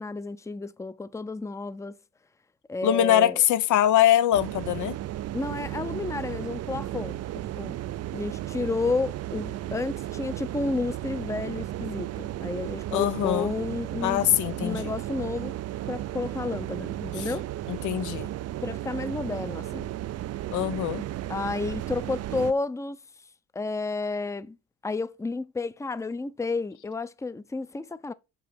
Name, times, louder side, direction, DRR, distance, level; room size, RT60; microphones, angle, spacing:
voice 1, 0.0-2.0 2.7-3.4 5.3-7.2 7.6-7.8 8.1-14.2 14.6-15.5 15.9-17.5 18.6-19.9 21.3-23.0 23.5-24.6 24.8-28.1, left 3 dB, 10° left, 0.6 m, -31 dB
voice 2, 2.8-5.0 12.9-13.5 14.0-14.9 17.2-17.3 17.7-18.3 20.5-21.0, left 12 dB, 75° left, 0.8 m, -23 dB
sound 1, 4.3-22.5, right 13 dB, 55° right, 0.5 m, -34 dB
5.9 x 5.4 x 5.7 m
cardioid pair, 90°, 30 cm